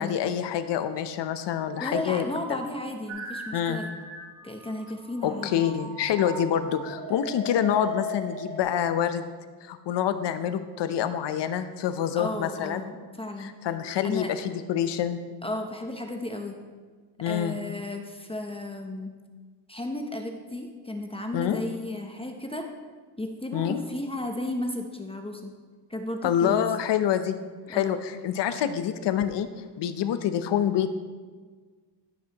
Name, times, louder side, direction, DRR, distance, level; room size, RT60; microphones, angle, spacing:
voice 1, 0.0-2.6 3.5-3.9 5.2-9.2 9.6-12.8 13.4-15.2 17.2-17.6 21.3-21.6 23.5-23.8 26.2-27.4 27.7-29.5 29.8-30.9, left 9 dB, 60° left, 11 dB, 0.8 m, -27 dB
voice 2, 1.8-3.9 4.4-5.6 12.2-13.5 14.0-14.3 15.4-16.5 17.3-19.1 19.7-22.7 23.2-25.5 25.9-26.5 27.7-28.0, left 1 dB, 10° left, 3 dB, 0.7 m, -34 dB
sound 1, 3.1-8.6, equal, 70° right, 1.9 m, -38 dB
14.5 x 6.1 x 3.0 m, 1.5 s
cardioid pair, 105°, 48 cm